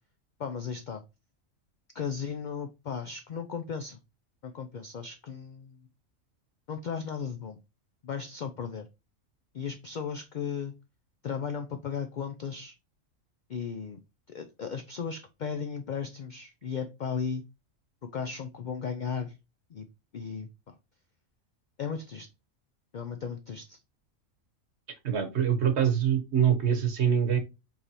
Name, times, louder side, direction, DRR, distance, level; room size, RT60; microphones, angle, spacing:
voice 1, 0.4-1.0 1.9-4.0 4.4-5.9 6.7-7.6 8.0-8.9 9.5-10.8 11.2-12.7 13.5-14.0 14.3-17.4 18.0-19.4 19.7-19.9 20.1-20.7 21.8-22.3 22.9-23.8, left 6 dB, 70° left, 7 dB, 0.4 m, -36 dB
voice 2, 25.0-27.4, right 8 dB, 55° right, 6 dB, 1.2 m, -24 dB
4.6 x 3.3 x 2.8 m, 0.25 s
omnidirectional pair, 1.4 m